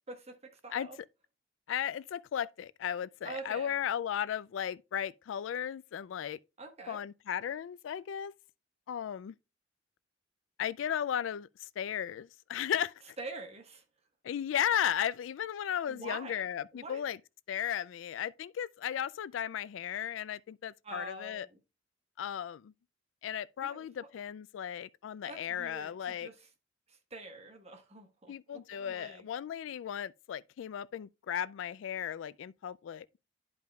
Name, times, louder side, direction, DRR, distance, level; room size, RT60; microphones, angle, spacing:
voice 1, 0.1-1.0 3.2-3.7 6.6-7.0 13.2-13.8 15.9-16.4 16.7-17.0 20.8-21.6 23.6-24.1 25.3-26.5 26.9-29.3, right 3 dB, 35° right, 1.2 m, -46 dB
voice 2, 1.7-6.4 6.9-8.3 8.9-9.3 10.6-11.5 11.8-13.2 14.2-17.2 17.5-21.5 22.2-22.7 23.2-26.3 28.3-33.1, left 9 dB, 90° left, 0.3 m, -35 dB
11.0 x 5.2 x 2.3 m
head